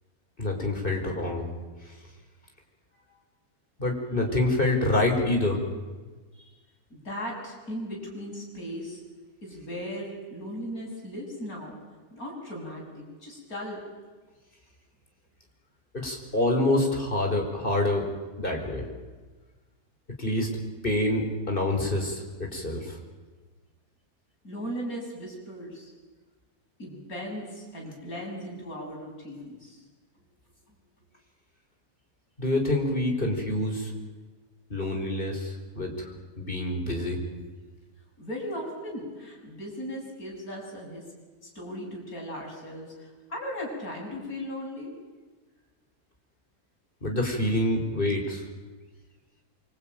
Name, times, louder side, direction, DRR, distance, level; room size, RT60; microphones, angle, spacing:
voice 1, 0.4-1.4 3.8-5.6 15.9-18.1 18.4-18.9 20.2-20.5 20.8-23.0 32.4-33.9 34.7-36.1 36.4-37.2 47.0-48.4, left 1 dB, 30° left, 2 dB, 5.2 m, -26 dB
voice 2, 6.9-9.0 9.4-11.8 12.1-13.8 24.4-25.9 26.8-29.8 38.2-41.0 41.5-45.0, equal, 60° left, -1 dB, 8.1 m, -37 dB
25.0 x 25.0 x 9.3 m, 1.3 s
omnidirectional pair, 1.7 m